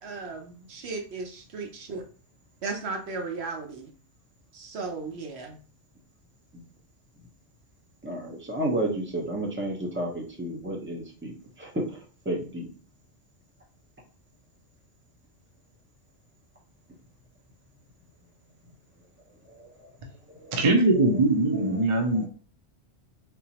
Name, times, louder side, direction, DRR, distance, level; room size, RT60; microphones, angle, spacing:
voice 1, 0.0-2.0 2.6-3.9 4.5-5.6, right 4 dB, 70° right, 3 dB, 1.0 m, -35 dB
voice 2, 8.0-12.7 19.5-19.9 20.3-20.7 21.5-22.3, right 1 dB, 10° right, -1 dB, 0.8 m, -32 dB
voice 3, 20.5-22.3, right 2 dB, 45° right, 3 dB, 0.4 m, -22 dB
3.7 x 2.9 x 2.8 m, 0.39 s
omnidirectional pair, 1.1 m